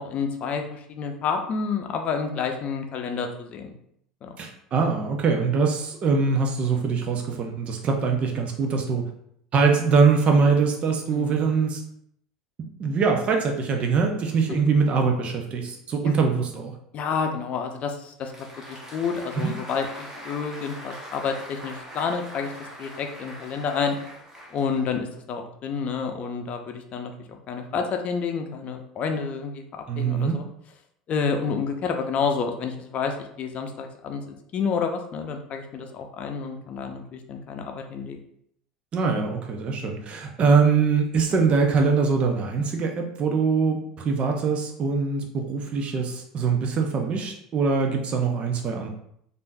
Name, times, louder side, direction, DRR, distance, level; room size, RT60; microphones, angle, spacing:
voice 1, 0.0-3.7 4.2-4.4 11.1-11.5 16.0-16.1 16.9-18.3 18.7-22.5 22.8-24.0 24.5-30.5 31.1-38.2, left 5 dB, 45° left, 4 dB, 0.6 m, -29 dB
voice 2, 4.4-9.0 9.5-11.8 12.6-16.7 19.4-19.5 29.9-30.4 38.9-48.9, right 5 dB, 40° right, 2 dB, 0.6 m, -23 dB
Applause, 18.0-25.1, equal, 20° right, 1.1 m, -42 dB
3.5 x 2.6 x 2.6 m, 0.71 s
hypercardioid pair, 80°, 3 cm